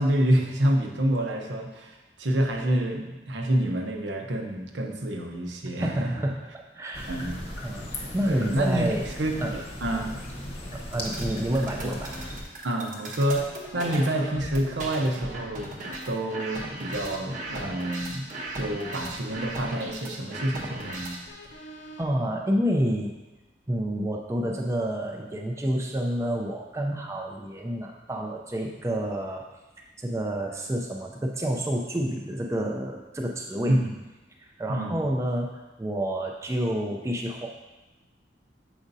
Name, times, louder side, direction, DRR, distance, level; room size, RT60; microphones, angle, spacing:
voice 1, 0.0-6.2 7.1-7.4 8.3-10.2 11.8-11.9 12.6-15.7 16.1-21.2 33.7-33.9 34.7-35.0, right 1 dB, 80° right, 2 dB, 0.8 m, -27 dB
voice 2, 5.8-7.1 7.5-9.1 9.4-9.5 10.7-12.1 22.0-23.2 23.7-29.5 30.0-33.8 34.4-35.5 35.8-37.5, right 1 dB, 15° right, 0 dB, 0.4 m, -29 dB
sound 1, 6.9-12.4, left 1 dB, 30° left, 0.9 m, -37 dB
sound 2, 7.7-22.9, left 1 dB, 70° left, 0.7 m, -49 dB
sound 3, 10.9-21.3, right 2 dB, 45° right, 0.8 m, -38 dB
7.2 x 5.0 x 2.7 m, 1.1 s
head